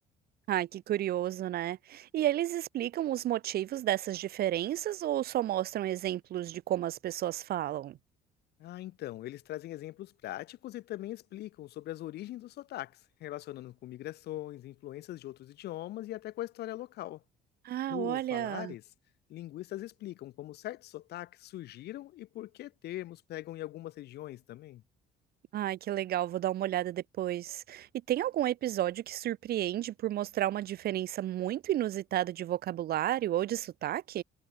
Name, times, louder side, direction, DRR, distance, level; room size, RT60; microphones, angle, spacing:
voice 1, 0.5-8.0 17.6-18.7 25.5-34.2, right 13 dB, 65° right, 2.6 m, -32 dB
voice 2, 8.6-17.2 17.9-18.8 19.3-24.8, left 15 dB, 75° left, 7.8 m, -41 dB
cardioid pair, 110°, 17 cm